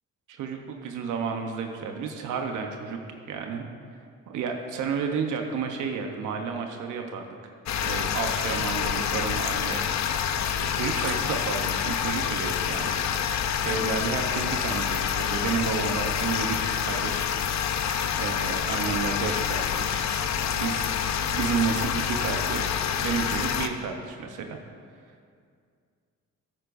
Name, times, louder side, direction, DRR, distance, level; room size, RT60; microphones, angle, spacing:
voice 1, 0.3-3.0 3.3-3.6 4.3-7.3 7.8-9.8 10.5-12.9 13.2-17.3 18.1-20.1 20.4-24.6, right 5 dB, 85° right, 3 dB, 0.9 m, -31 dB
sound 1, 7.7-23.7, left 8 dB, 65° left, 0.6 m, -27 dB
13.5 x 9.5 x 2.6 m, 2.2 s
cardioid pair, 90°, 30 cm